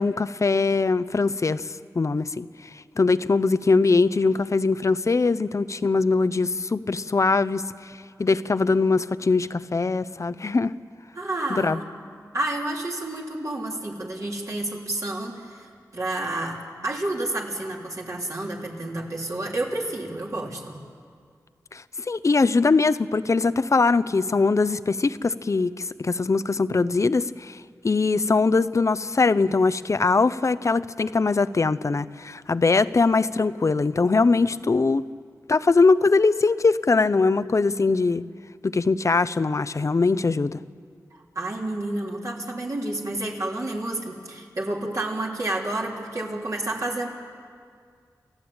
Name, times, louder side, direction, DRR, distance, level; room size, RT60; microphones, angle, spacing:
voice 1, 0.0-1.7 1.9-2.4 3.0-7.6 8.2-10.7 11.5-11.8 21.7-27.6 27.8-35.0 35.5-38.2 38.6-40.6, left 3 dB, 50° left, 14 dB, 0.7 m, -21 dB
voice 2, 11.1-11.8 12.3-15.7 15.9-20.8 41.1-47.1, right 2 dB, 50° right, -2 dB, 3.7 m, -30 dB
29.5 x 14.0 x 8.8 m, 2.1 s
wide cardioid pair, 65°, 7 cm